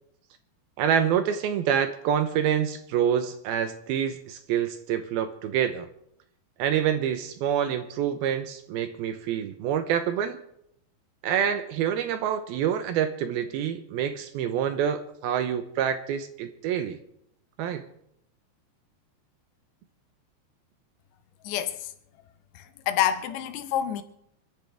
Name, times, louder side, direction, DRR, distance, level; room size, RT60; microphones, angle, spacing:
voice 1, 0.8-5.9 6.6-10.4 11.2-17.0 17.6-17.9, right 9 dB, 75° right, 2.4 m, -27 dB
voice 2, 21.4-21.9 22.5-24.0, left 10 dB, 80° left, 3.0 m, -28 dB
27.5 x 11.5 x 3.5 m
omnidirectional pair, 4.9 m